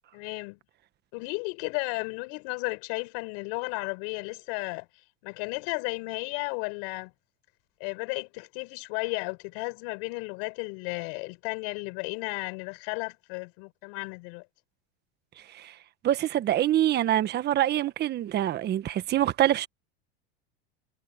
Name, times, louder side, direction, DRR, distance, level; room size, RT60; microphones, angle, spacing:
voice 1, 0.1-0.6 1.1-4.9 5.2-7.1 7.8-14.4, left 34 dB, 65° left, 6.4 m, -34 dB
voice 2, 16.0-19.7, right 12 dB, 35° right, 1.4 m, -25 dB
supercardioid pair, 120°, 29 cm